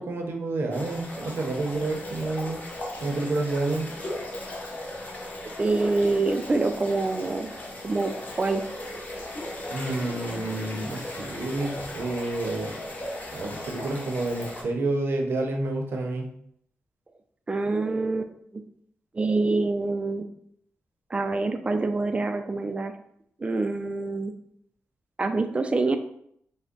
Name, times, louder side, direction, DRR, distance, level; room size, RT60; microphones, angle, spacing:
voice 1, 0.0-2.6 3.0-3.9 9.7-12.7 13.3-16.3, right 2 dB, 60° right, 2 dB, 0.6 m, -29 dB
sound 1, 0.7-14.6, left 1 dB, 40° left, 0.7 m, -37 dB
voice 2, 5.6-7.5 7.8-8.1 8.4-8.6 17.5-18.6 19.1-20.2 21.1-22.9 23.4-24.3 25.2-26.0, right 3 dB, 25° right, 7 dB, 0.3 m, -26 dB
3.4 x 2.1 x 3.8 m, 0.70 s
wide cardioid pair, 120°, 4 cm